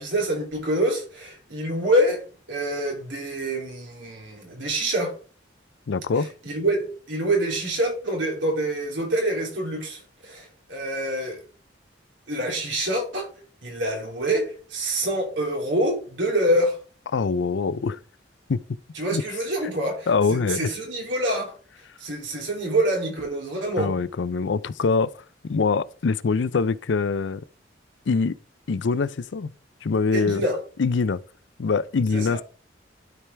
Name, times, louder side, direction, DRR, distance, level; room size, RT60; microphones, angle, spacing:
voice 1, 0.0-2.2 2.5-5.1 6.4-11.4 12.3-13.3 13.6-16.8 18.9-21.5 22.0-23.9 30.1-30.6 32.1-32.4, right 1 dB, 75° right, 3.0 m, -26 dB
voice 2, 5.9-6.3 17.1-18.0 18.5-18.6 19.1-19.2 20.1-20.7 23.8-25.1 25.4-27.4 28.1-28.4 28.7-29.5 29.8-30.4 30.8-31.2 31.6-32.4, left 4 dB, 75° left, 0.4 m, -23 dB
12.0 x 4.8 x 3.4 m
head